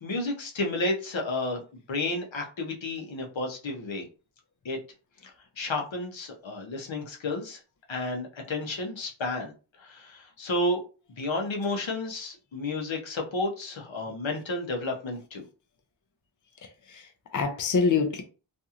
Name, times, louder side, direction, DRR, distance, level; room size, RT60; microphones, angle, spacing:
voice 1, 0.0-4.1 4.6-4.8 5.2-5.3 5.6-7.6 7.9-9.5 9.8-10.8 11.2-15.4, left 2 dB, 75° left, 0.8 m, -31 dB
voice 2, 16.6-18.2, left 5 dB, 45° left, 0.5 m, -27 dB
2.8 x 2.6 x 2.4 m
wide cardioid pair, 75°, 46 cm